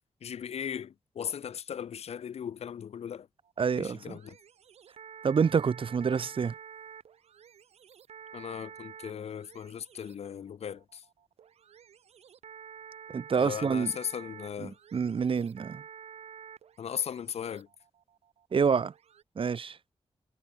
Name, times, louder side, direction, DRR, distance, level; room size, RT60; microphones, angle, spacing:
voice 1, 0.2-3.3 3.8-4.4 8.3-11.0 13.4-14.7 16.8-17.7, left 8 dB, 80° left, 1.7 m, -37 dB
sound 1, 3.4-19.2, right 8 dB, 90° right, 4.3 m, -50 dB
voice 2, 3.6-4.2 5.2-6.5 13.1-13.9 14.6-15.8 18.5-18.9 19.3-19.8, right 6 dB, 55° right, 1.6 m, -27 dB
cardioid pair, 90°, 11 cm